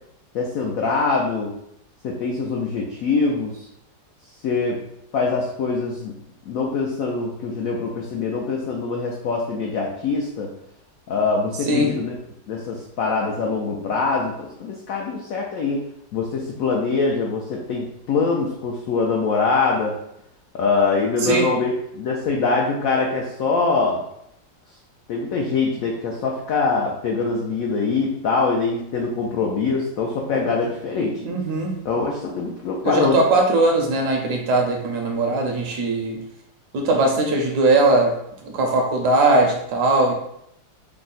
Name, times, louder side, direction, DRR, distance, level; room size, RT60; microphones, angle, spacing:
voice 1, 0.3-1.6 2.0-3.7 4.4-4.8 5.1-6.1 6.5-10.5 11.1-12.1 12.5-15.8 16.1-19.9 20.5-24.0 25.1-31.2 31.8-33.2, left 4 dB, 90° left, -1 dB, 0.7 m, -23 dB
voice 2, 31.2-31.7 32.8-36.2 36.7-38.1 38.4-40.1, right 2 dB, 70° right, 2 dB, 1.0 m, -19 dB
3.4 x 2.1 x 3.8 m, 0.78 s
omnidirectional pair, 2.0 m